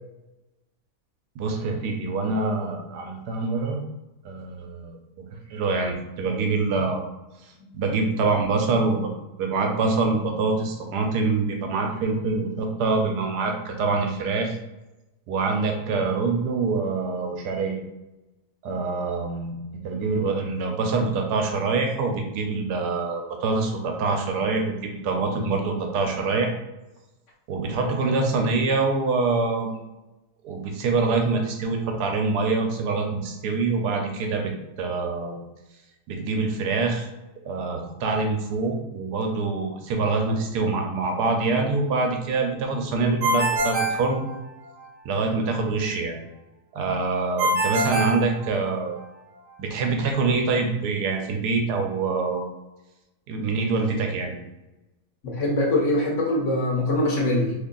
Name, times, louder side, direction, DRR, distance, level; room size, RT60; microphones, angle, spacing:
voice 1, 1.4-3.8 4.2-5.0 5.5-7.1 7.7-9.1 9.4-14.6 15.3-17.8 18.6-19.6 19.8-26.5 27.5-29.7 30.4-34.5 34.8-35.4 36.1-37.1 37.4-44.2 45.0-46.2 46.7-49.0 49.6-52.4 53.3-54.4, right 3 dB, 85° right, 2 dB, 1.2 m, -25 dB
Ringtone, 43.2-44.8 47.4-49.0, right 1 dB, 60° right, 1.1 m, -25 dB
voice 2, 55.2-57.5, left 1 dB, 60° left, -2 dB, 1.0 m, -23 dB
3.0 x 2.6 x 3.7 m, 1.0 s
omnidirectional pair, 1.7 m